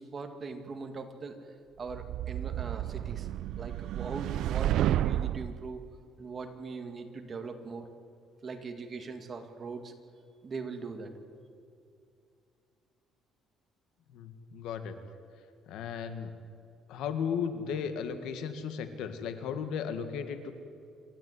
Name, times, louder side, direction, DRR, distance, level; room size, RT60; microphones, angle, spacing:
voice 1, 0.0-1.4 1.8-3.3 3.6-5.8 6.2-7.9 8.4-9.9 10.4-11.1, right 4 dB, 30° right, 6 dB, 2.1 m, -41 dB
sound 1, 1.9-5.6, right 12 dB, 70° right, 0.4 m, -31 dB
voice 2, 14.1-15.0 15.7-16.3 16.9-20.5, left 7 dB, 80° left, 9 dB, 1.9 m, -35 dB
27.5 x 13.0 x 9.6 m, 2.4 s
cardioid pair, 130°, 0 cm